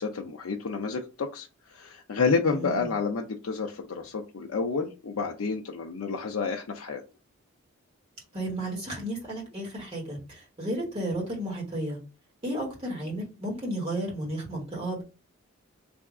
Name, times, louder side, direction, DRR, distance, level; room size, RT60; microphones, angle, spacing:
voice 1, 0.0-7.0, left 4 dB, 75° left, 2 dB, 0.5 m, -30 dB
voice 2, 2.4-2.9 8.3-12.0 12.4-15.0, right 1 dB, 25° right, -2 dB, 1.3 m, -33 dB
3.4 x 2.3 x 3.6 m, 0.30 s
head